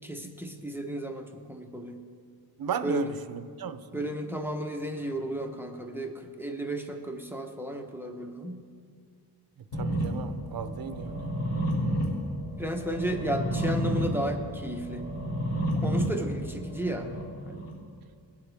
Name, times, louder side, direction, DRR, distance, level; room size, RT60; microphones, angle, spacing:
voice 1, 0.0-2.0 2.8-3.1 3.9-8.6 12.6-15.1 15.8-17.1 17.4-17.7, right 1 dB, 5° right, 4 dB, 0.9 m, -33 dB
voice 2, 2.6-4.0 9.8-11.3, right 7 dB, 55° right, 11 dB, 0.6 m, -35 dB
sound 1, 9.7-17.7, equal, 70° left, 2.8 m, -31 dB
19.5 x 8.4 x 3.5 m, 2.1 s
wide cardioid pair, 125°, 43 cm